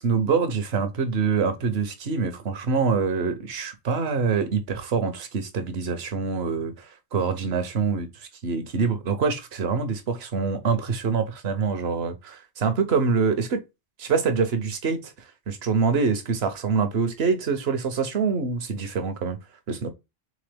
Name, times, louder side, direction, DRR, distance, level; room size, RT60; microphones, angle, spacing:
voice 1, 0.0-6.7 7.1-8.1 8.4-13.6 14.0-15.1 15.5-19.4 19.7-19.9, right 5 dB, 70° right, 1.0 m, -25 dB
3.8 x 3.6 x 3.3 m
omnidirectional pair, 1.1 m